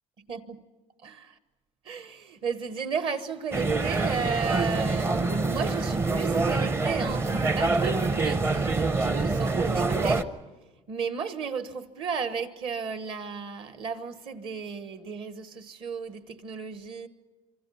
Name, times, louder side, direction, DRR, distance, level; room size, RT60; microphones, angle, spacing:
voice 1, 0.3-0.6 1.0-1.3 1.8-10.3 10.9-17.1, right 6 dB, 45° right, 1.2 m, -34 dB
sound 1, 3.5-10.2, right 3 dB, 20° right, 0.7 m, -26 dB
27.0 x 25.0 x 5.7 m
cardioid pair, 175°, 13 cm